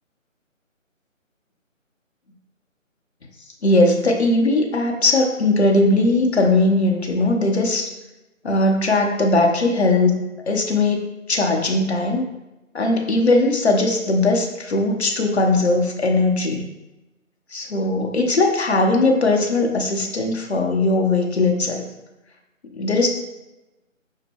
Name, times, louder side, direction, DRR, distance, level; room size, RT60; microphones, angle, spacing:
voice 1, 3.6-7.9 8.4-10.2 10.5-12.2 12.7-16.7 17.5-21.9 22.8-23.1, left 2 dB, 55° left, 1 dB, 0.8 m, -19 dB
6.0 x 2.1 x 3.4 m, 1.0 s
figure-of-eight pair, 155°, 40 cm